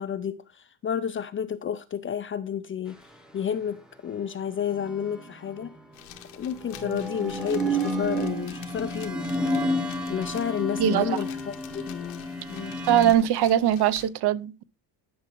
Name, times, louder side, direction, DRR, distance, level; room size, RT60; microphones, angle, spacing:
voice 1, 0.0-3.0 3.3-5.7 6.3-9.3 10.1-12.8, left 8 dB, 30° left, 0.4 m, -31 dB
sound 1, 4.8-5.7 6.6-13.1, equal, ahead, 0.9 m, -30 dB
sound 2, 5.9-14.1, left 11 dB, 90° left, 1.7 m, -48 dB
voice 2, 10.8-11.2 12.9-14.6, right 11 dB, 55° right, 0.6 m, -21 dB
11.0 x 5.9 x 3.0 m
cardioid pair, 140°, 49 cm